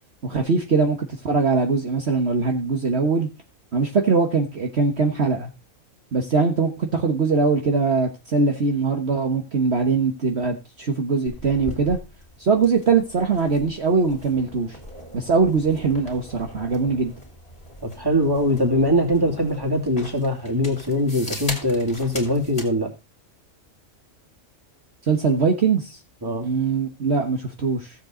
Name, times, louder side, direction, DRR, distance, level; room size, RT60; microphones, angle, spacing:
voice 1, 0.2-1.0 1.2-3.3 3.7-5.5 6.1-12.0 12.4-14.8 15.1-17.1 25.1-26.0 26.4-27.9, right 4 dB, 50° right, 1.6 m, -21 dB
sound 1, 11.3-22.7, left 1 dB, 25° left, 3.0 m, -39 dB
voice 2, 17.8-22.9 26.2-26.5, equal, 15° right, 2.7 m, -22 dB
16.0 x 7.5 x 3.8 m
omnidirectional pair, 1.4 m